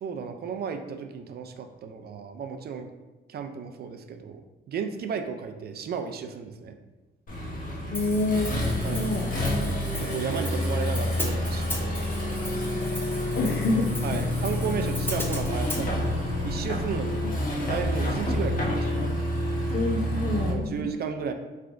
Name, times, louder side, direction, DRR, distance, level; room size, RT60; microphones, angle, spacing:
voice 1, 0.0-2.9 3.3-4.4 4.7-6.7 8.8-9.1 10.0-12.1 14.0-17.3 17.6-19.1 20.5-21.3, right 6 dB, 55° right, 7 dB, 0.4 m, -34 dB
Accelerating revving vroom, 7.3-20.5, left 1 dB, 45° left, 1.1 m, -28 dB
voice 2, 7.9-8.5 8.9-9.3 13.3-13.9 14.1-14.3 19.7-20.9, left 2 dB, 65° left, 2 dB, 0.7 m, -27 dB
Hi-hat, 7.9-15.8, left 1 dB, 10° left, 0.6 m, -38 dB
4.6 x 3.3 x 2.6 m, 1.1 s
cardioid pair, 90°, 20 cm